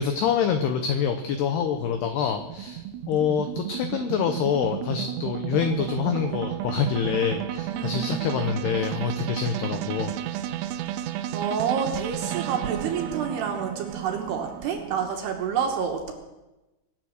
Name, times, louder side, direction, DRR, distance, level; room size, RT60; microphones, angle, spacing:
voice 1, 0.0-10.1, left 7 dB, 85° left, 7 dB, 2.3 m, -26 dB
sound 1, 0.9-15.1, right 11 dB, 90° right, 3.4 m, -33 dB
voice 2, 7.7-8.5 11.3-16.1, right 7 dB, 70° right, 3 dB, 2.8 m, -29 dB
24.0 x 8.2 x 6.4 m, 1.0 s
omnidirectional pair, 5.9 m